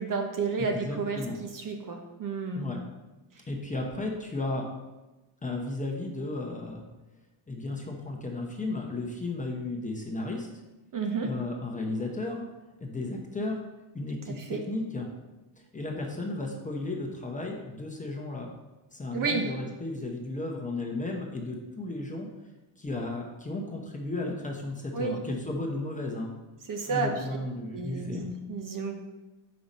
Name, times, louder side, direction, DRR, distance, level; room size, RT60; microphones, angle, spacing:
voice 1, 0.0-2.7 10.9-11.3 14.4-14.6 19.1-19.5 24.9-25.2 26.7-27.1 27.7-29.0, right 4 dB, 40° right, 3 dB, 0.8 m, -31 dB
voice 2, 0.6-1.4 2.5-2.8 3.5-4.7 5.4-6.8 7.5-10.5 11.2-12.4 12.8-13.6 13.9-15.1 15.7-18.5 18.9-22.3 22.8-26.3 26.9-28.3, left 2 dB, 15° left, 0 dB, 0.8 m, -34 dB
5.7 x 5.2 x 4.1 m, 1.1 s
cardioid pair, 135°, 48 cm